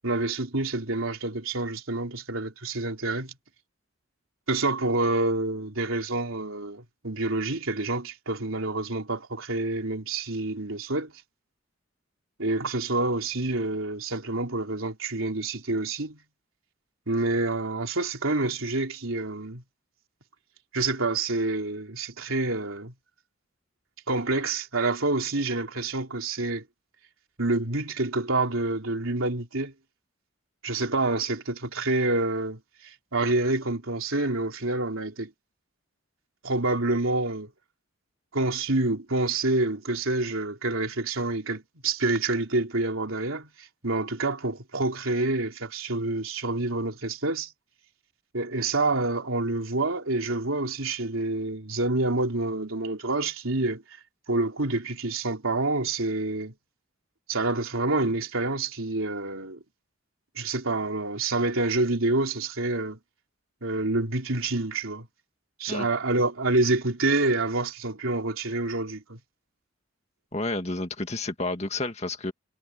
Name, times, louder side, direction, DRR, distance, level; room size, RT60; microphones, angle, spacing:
voice 1, 0.0-3.3 4.5-11.1 12.4-16.2 17.1-19.6 20.7-22.9 24.1-26.6 27.4-29.7 30.6-35.3 36.4-37.5 38.3-47.5 48.3-53.8 54.3-56.5 57.3-59.6 60.4-63.0 63.6-65.1 65.6-69.2, right 2 dB, 85° right, 3.5 m, -27 dB
voice 2, 70.3-72.3, left 2 dB, 30° left, 2.0 m, -30 dB
head